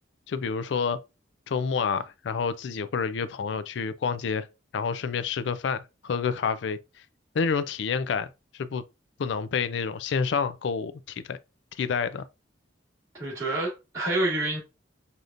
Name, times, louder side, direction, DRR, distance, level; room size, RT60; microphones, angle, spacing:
voice 1, 0.3-1.0 1.5-4.5 4.7-6.8 7.3-8.3 8.5-8.8 9.2-11.4 11.8-12.3, left 5 dB, 65° left, 0.4 m, -28 dB
voice 2, 13.2-14.6, right 2 dB, 15° right, 2.2 m, -27 dB
4.9 x 2.8 x 2.4 m
head